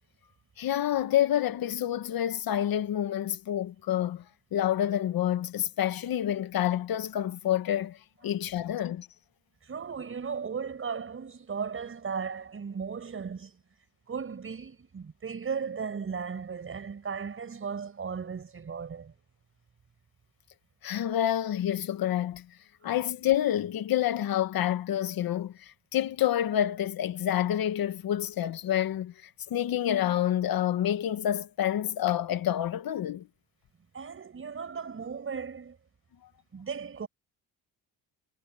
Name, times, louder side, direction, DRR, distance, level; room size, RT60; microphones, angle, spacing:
voice 1, 0.6-4.2 4.5-8.0 8.2-9.1 20.8-22.5 22.8-29.1 29.5-33.3, left 11 dB, 60° left, 1.8 m, -28 dB
voice 2, 9.6-13.6 14.1-19.1 33.9-35.8 36.5-37.1, right 6 dB, 30° right, 5.8 m, -36 dB
cardioid pair, 130°, 41 cm